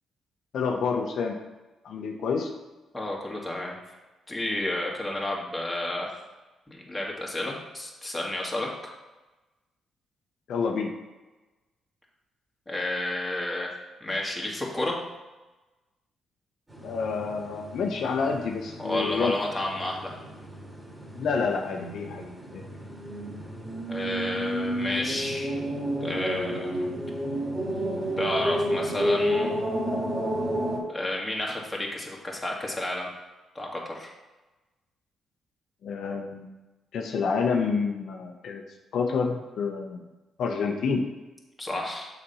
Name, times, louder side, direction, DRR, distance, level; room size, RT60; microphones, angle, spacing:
voice 1, 0.5-1.4 1.8-2.5 10.5-10.9 16.8-19.3 21.1-22.2 22.5-22.6 35.8-36.6 36.9-38.6 38.9-40.0 40.4-41.0, left 5 dB, 70° left, 2 dB, 0.8 m, -28 dB
voice 2, 2.9-3.8 4.3-6.1 6.7-8.7 12.7-13.7 14.0-15.0 18.8-20.2 23.9-25.5 26.0-26.8 28.2-29.5 30.9-33.1 33.5-34.1 41.6-42.1, left 1 dB, 10° left, -3 dB, 2.0 m, -31 dB
sound 1, 16.7-30.8, equal, 20° right, 2.7 m, -31 dB
6.9 x 4.2 x 5.5 m, 1.1 s
cardioid pair, 80°, 0 cm